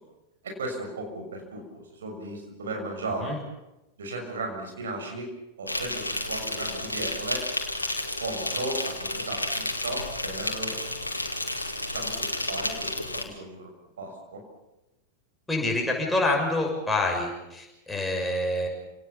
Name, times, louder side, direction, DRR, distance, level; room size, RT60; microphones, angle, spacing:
voice 1, 0.4-3.4 4.0-5.3 5.6-7.4 8.2-10.7 11.8-14.4, right 2 dB, 65° right, 2 dB, 6.4 m, -36 dB
Insect, 5.7-13.2, left 1 dB, 85° left, 2.4 m, -31 dB
voice 2, 15.5-18.7, left 2 dB, 5° left, 0 dB, 6.6 m, -27 dB
29.0 x 18.5 x 7.1 m, 0.95 s
figure-of-eight pair, 90°, 0 cm